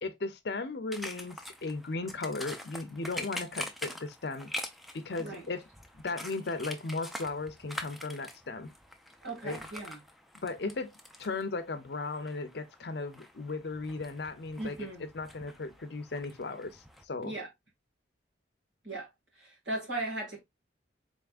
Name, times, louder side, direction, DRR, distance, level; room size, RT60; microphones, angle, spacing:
voice 1, 0.0-4.5 4.9-5.6 5.9-8.7 9.4-9.6 10.4-10.9 11.2-17.3, left 3 dB, 60° left, 0.6 m, -36 dB
sound 1, 0.9-17.0, left 1 dB, ahead, 0.4 m, -45 dB
voice 2, 9.2-10.0 14.6-15.1 17.2-17.5 18.8-19.1 19.3-20.4, right 2 dB, 80° right, 2.1 m, -37 dB
4.0 x 3.5 x 2.4 m
head